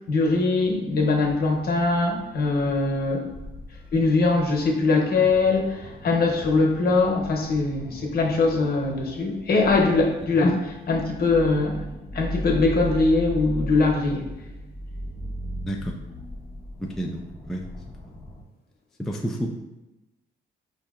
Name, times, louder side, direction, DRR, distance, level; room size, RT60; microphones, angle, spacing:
voice 1, 0.1-3.3 3.9-11.8 12.1-14.2, left 3 dB, 50° left, 0 dB, 0.9 m, -22 dB
sound 1, 2.1-18.4, equal, 20° left, 0.7 m, -38 dB
voice 2, 15.6-16.0 16.8-18.1 19.0-19.5, equal, ahead, 1 dB, 0.3 m, -31 dB
4.8 x 2.7 x 2.4 m, 1.0 s
cardioid pair, 90°, 20 cm